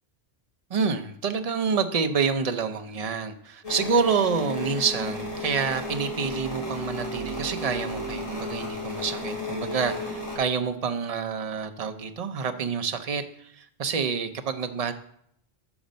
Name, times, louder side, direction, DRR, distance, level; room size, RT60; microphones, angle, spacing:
voice 1, 0.7-14.9, right 5 dB, 45° right, 7 dB, 0.6 m, -28 dB
sound 1, 3.6-10.4, left 2 dB, 35° left, 2.2 m, -33 dB
7.1 x 5.2 x 5.1 m, 0.69 s
omnidirectional pair, 1.1 m